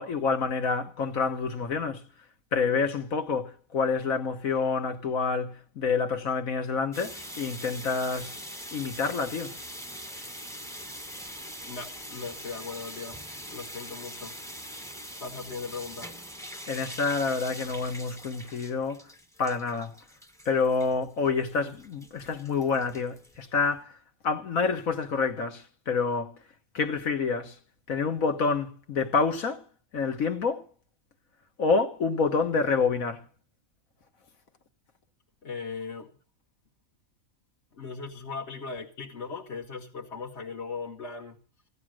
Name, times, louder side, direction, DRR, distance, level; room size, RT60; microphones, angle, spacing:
voice 1, 0.0-2.0 2.5-8.4 8.7-9.6 16.7-19.0 19.4-19.9 20.5-23.9 24.2-26.4 26.7-27.6 27.9-29.6 29.9-30.6 31.6-33.3, left 4 dB, 70° left, 1.9 m, -28 dB
sound 1, 6.9-23.8, equal, ahead, 1.1 m, -43 dB
voice 2, 11.6-14.4 15.2-16.1 35.4-36.1 37.7-41.4, left 4 dB, 50° left, 1.7 m, -38 dB
16.0 x 11.0 x 6.4 m
omnidirectional pair, 1.5 m